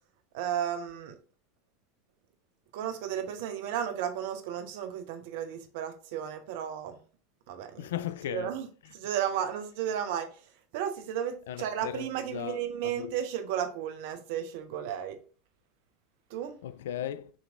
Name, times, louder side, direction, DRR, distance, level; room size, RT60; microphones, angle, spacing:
voice 1, 0.3-1.2 2.7-7.0 7.5-7.9 8.3-10.3 10.7-15.2 16.3-16.6, right 9 dB, 60° right, 0.7 m, -34 dB
voice 2, 7.8-8.5 11.5-13.1 16.6-17.3, left 11 dB, 70° left, 0.3 m, -37 dB
6.3 x 3.0 x 2.4 m
hypercardioid pair, 85°, 0 cm